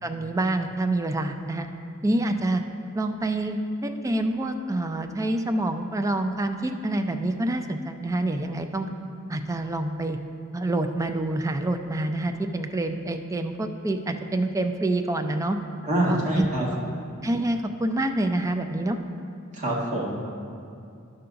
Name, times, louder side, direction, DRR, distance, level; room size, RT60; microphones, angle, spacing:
voice 1, 0.0-1.7 2.0-2.6 2.9-8.9 9.3-10.2 10.5-15.6 16.1-16.5 17.2-19.0, right 2 dB, 15° right, 6 dB, 0.4 m, -27 dB
voice 2, 15.8-16.7 19.5-20.1, right 1 dB, 35° right, -4 dB, 1.5 m, -25 dB
11.0 x 3.9 x 5.7 m, 2.5 s
head